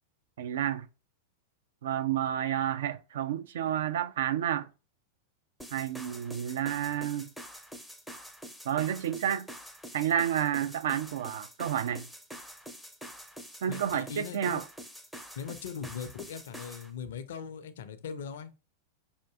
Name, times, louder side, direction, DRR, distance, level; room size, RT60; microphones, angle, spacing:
voice 1, 0.4-0.9 1.8-4.7 5.7-7.3 8.7-9.5 9.9-12.0 13.6-14.6, right 10 dB, 60° right, 0.3 m, -30 dB
sound 1, 5.6-16.9, equal, ahead, 0.5 m, -46 dB
voice 2, 13.7-14.6 15.4-18.5, left 6 dB, 60° left, 0.4 m, -40 dB
5.6 x 2.6 x 2.3 m
figure-of-eight pair, 90°, 0 cm